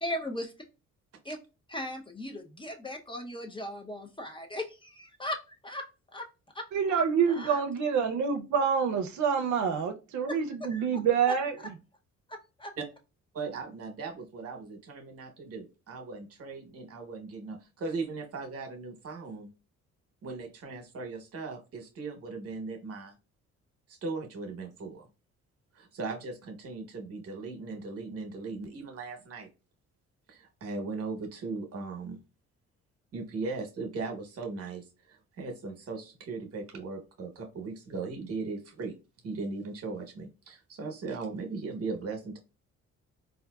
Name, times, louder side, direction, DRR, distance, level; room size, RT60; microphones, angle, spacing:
voice 1, 0.0-0.5 1.2-1.4 1.7-5.8 6.1-6.3 6.5-7.0 7.3-7.6 10.3-10.4 10.7-10.8 11.3-11.5 12.3-12.7, left 1 dB, 15° left, 2 dB, 0.6 m, -38 dB
voice 2, 6.7-11.7, right 6 dB, 70° right, 5 dB, 0.5 m, -27 dB
voice 3, 13.3-19.5 20.2-23.1 23.9-25.1 25.7-29.5 30.3-32.2 33.1-38.9 39.2-42.4, right 4 dB, 50° right, 3 dB, 1.0 m, -38 dB
3.6 x 2.5 x 2.3 m, 0.29 s
cardioid pair, 90°, 30 cm